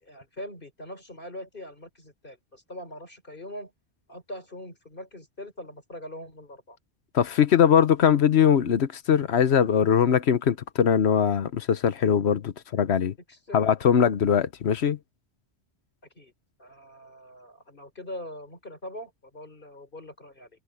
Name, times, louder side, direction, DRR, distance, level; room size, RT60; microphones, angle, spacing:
voice 1, 0.0-3.7 4.1-6.8 13.3-13.7 16.1-16.3 16.6-20.5, left 1 dB, 45° left, 4.4 m, -42 dB
voice 2, 7.1-13.1 13.5-15.0, left 8 dB, 65° left, 1.1 m, -21 dB
omnidirectional pair, 1.2 m